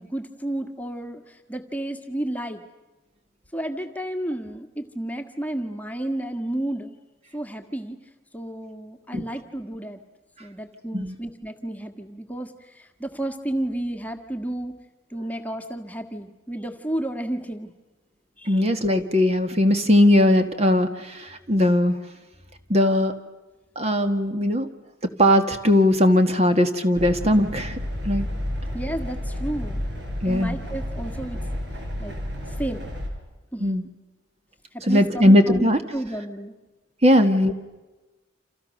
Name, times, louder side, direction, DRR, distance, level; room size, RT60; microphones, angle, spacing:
voice 1, 0.0-2.6 3.5-6.9 7.3-8.0 8.3-10.0 10.4-14.8 15.1-17.7 18.4-18.7 28.7-29.8 30.2-31.4 32.0-32.2 32.5-32.9 33.5-33.8 34.7-36.5 37.1-37.2, right 1 dB, 10° left, 6 dB, 1.6 m, -32 dB
voice 2, 18.4-22.0 22.7-23.2 23.7-24.7 25.0-27.8 28.0-28.3 30.2-30.6 33.6-33.9 34.9-35.8 37.0-37.5, left 1 dB, 30° right, 7 dB, 1.7 m, -19 dB
sound 1, 26.9-33.1, equal, 60° right, 6.4 m, -31 dB
29.5 x 28.0 x 6.5 m, 1.2 s
head